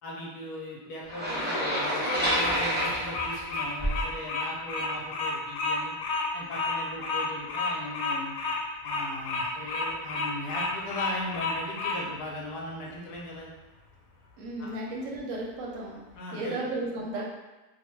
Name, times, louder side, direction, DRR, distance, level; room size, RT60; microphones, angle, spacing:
voice 1, 0.0-5.9 6.3-8.4 8.8-13.5 14.6-14.7 16.1-16.6, left 1 dB, 70° left, -3 dB, 1.2 m, -38 dB
Bird vocalization bird call bird song, 1.1-12.0, left 3 dB, 90° left, 1.2 m, -31 dB
sound 1, 1.1-4.1, equal, 10° right, 0.5 m, -28 dB
voice 2, 14.4-16.0 16.3-17.2, right 2 dB, 60° right, -3 dB, 0.9 m, -34 dB
2.9 x 2.1 x 3.1 m, 1.1 s
omnidirectional pair, 1.8 m